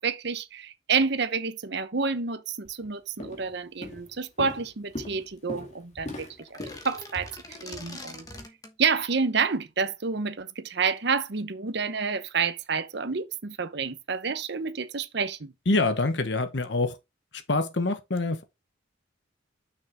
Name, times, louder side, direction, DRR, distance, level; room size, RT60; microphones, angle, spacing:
voice 1, 0.0-6.6 6.8-8.3 8.8-15.5, right 5 dB, 60° right, 0.8 m, -29 dB
Walk footsteps, 2.6-2.9 3.2-3.5 3.8-8.4, left 1 dB, 35° left, 2.1 m, -40 dB
sound 1, 6.4-8.8, left 2 dB, 20° left, 1.2 m, -44 dB
voice 2, 15.7-17.0 17.5-18.4, left 2 dB, 60° left, 1.0 m, -25 dB
6.3 x 6.2 x 3.5 m
head